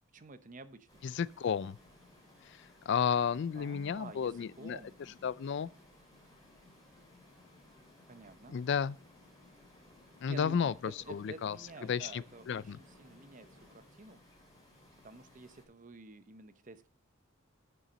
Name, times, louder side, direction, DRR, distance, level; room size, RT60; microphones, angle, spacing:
voice 1, 0.1-0.9 3.5-5.3 8.1-8.6 10.3-14.2 15.0-16.9, right 2 dB, 40° right, 0.7 m, -50 dB
sound 1, 0.9-15.6, left 1 dB, 20° left, 4.8 m, -62 dB
voice 2, 1.0-1.8 2.4-4.8 5.2-5.7 8.5-9.0 10.2-12.8, left 7 dB, 55° left, 0.3 m, -33 dB
sound 2, 1.7-13.8, left 2 dB, ahead, 4.4 m, -64 dB
9.2 x 7.0 x 5.0 m
head